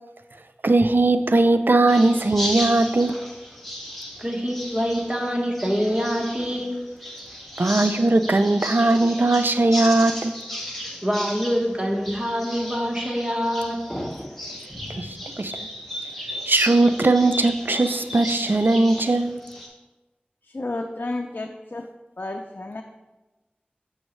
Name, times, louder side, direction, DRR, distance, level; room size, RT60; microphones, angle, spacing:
voice 1, 0.6-3.2 7.6-10.4 15.0-15.1 15.4-15.5 16.5-19.4, right 2 dB, 70° right, 9 dB, 0.4 m, -19 dB
sound 1, 1.9-19.7, equal, 5° left, 1.6 m, -35 dB
voice 2, 4.2-6.7 11.0-13.8, equal, 30° right, -1 dB, 1.2 m, -25 dB
voice 3, 20.5-21.9 22.2-22.8, left 2 dB, 65° left, 3 dB, 0.4 m, -31 dB
7.0 x 6.3 x 3.1 m, 1.1 s
wide cardioid pair, 45°, 4 cm